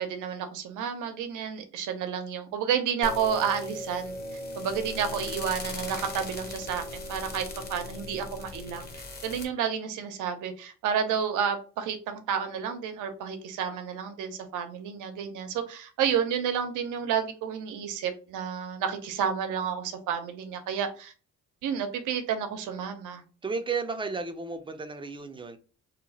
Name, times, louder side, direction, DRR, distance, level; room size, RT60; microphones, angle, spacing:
voice 1, 0.0-4.1 4.6-8.9 9.2-21.1 21.6-23.2, right 7 dB, 90° right, 0.7 m, -30 dB
sound 1, 3.0-9.5, left 1 dB, 30° left, 0.8 m, -38 dB
voice 2, 23.4-25.6, right 4 dB, 15° right, 0.5 m, -33 dB
2.9 x 2.0 x 3.9 m
cardioid pair, 90°, 30 cm